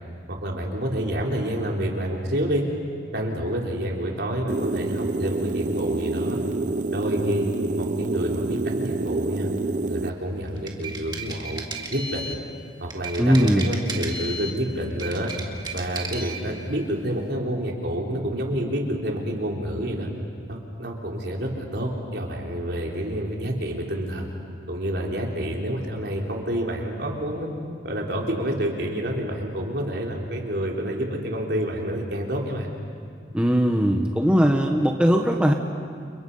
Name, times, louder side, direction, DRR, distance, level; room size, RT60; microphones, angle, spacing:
voice 1, 0.3-2.6 3.1-6.4 6.9-7.5 7.7-9.5 9.9-11.6 11.9-12.4 12.8-15.3 15.7-20.1 20.5-24.3 24.7-27.5 27.8-32.7, equal, 65° right, -1 dB, 4.2 m, -28 dB
sound 1, 4.5-10.1, right 3 dB, 45° right, 0.6 m, -27 dB
sound 2, 10.5-12.4 12.9-14.6 14.9-16.4, right 2 dB, 25° right, 2.2 m, -34 dB
voice 2, 13.2-13.7 33.3-35.5, equal, 5° right, 2 dB, 1.2 m, -19 dB
30.0 x 30.0 x 5.6 m, 2.1 s
head